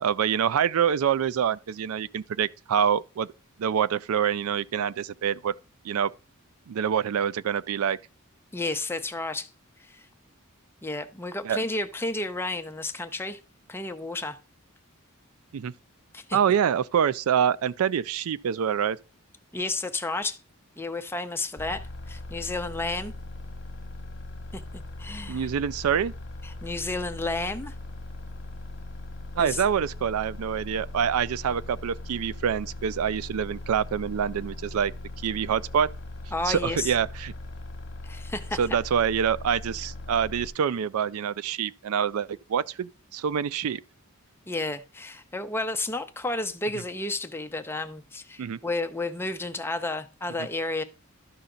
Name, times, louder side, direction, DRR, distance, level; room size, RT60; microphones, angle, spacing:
voice 1, 0.0-3.3 3.6-5.5 5.8-6.1 6.7-8.0 11.4-11.6 15.5-15.7 16.3-19.0 25.3-26.1 29.4-34.9 35.2-35.9 36.5-37.3 38.6-43.8 48.4-48.6, right 8 dB, 85° right, 0.4 m, -26 dB
voice 2, 8.5-9.5 9.8-10.1 10.8-13.4 13.7-14.4 16.1-16.4 19.5-20.4 20.8-23.1 24.5-24.6 25.0-25.5 26.4-27.7 29.4-29.6 36.3-36.9 38.0-38.6 44.5-50.8, left 2 dB, 10° left, 0.6 m, -31 dB
sound 1, 21.6-40.5, left 2 dB, 60° left, 1.0 m, -39 dB
12.5 x 5.7 x 3.8 m
head